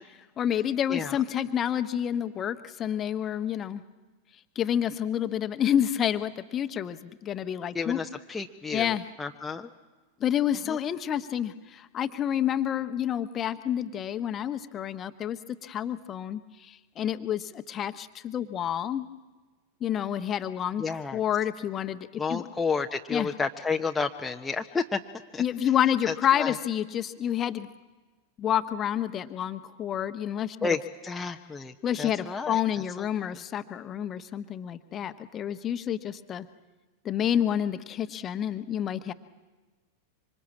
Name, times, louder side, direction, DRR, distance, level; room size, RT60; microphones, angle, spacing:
voice 1, 0.4-3.8 4.5-8.0 8.7-9.0 10.2-19.1 19.8-20.8 21.1-22.5 23.1-23.3 25.4-27.7 28.4-30.8 31.8-36.5 37.0-39.1, left 10 dB, 25° left, 10 dB, 1.2 m, -29 dB
voice 2, 7.7-9.7 10.7-10.8 20.8-21.2 22.2-25.0 25.3-25.4 26.1-26.5 30.6-32.6 33.0-33.1, left 4 dB, 10° left, 2 dB, 1.0 m, -31 dB
26.0 x 25.5 x 8.6 m, 1.3 s
figure-of-eight pair, 90°, 0 cm